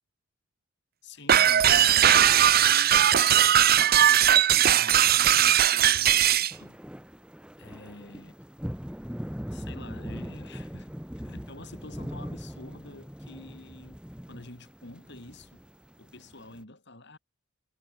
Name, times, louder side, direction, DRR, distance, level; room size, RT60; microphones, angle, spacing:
voice 1, 1.0-2.2 2.6-6.8 7.6-8.3 9.5-10.9 11.2-14.0 14.3-15.6 16.0-17.2, left 2 dB, 55° left, 5.0 m, -48 dB
sound 1, 1.3-6.5, right 10 dB, 50° right, 0.8 m, -19 dB
sound 2, 6.5-16.6, equal, 5° right, 1.8 m, -41 dB
head